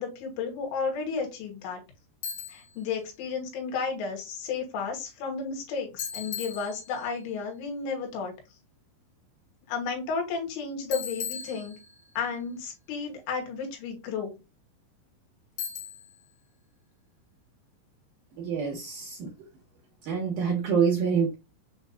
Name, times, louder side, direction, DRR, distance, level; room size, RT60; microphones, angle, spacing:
voice 1, 0.0-1.8 2.5-8.3 9.7-11.8 12.2-14.4, left 5 dB, 85° left, 1 dB, 3.6 m, -33 dB
Bicycle, 2.2-2.8 6.0-7.2 10.9-12.2 15.6-16.2, left 7 dB, 65° left, 1.7 m, -37 dB
voice 2, 18.4-19.3 20.0-21.4, right 6 dB, 80° right, 0 dB, 1.9 m, -26 dB
7.1 x 2.6 x 2.3 m, 0.26 s
omnidirectional pair, 5.3 m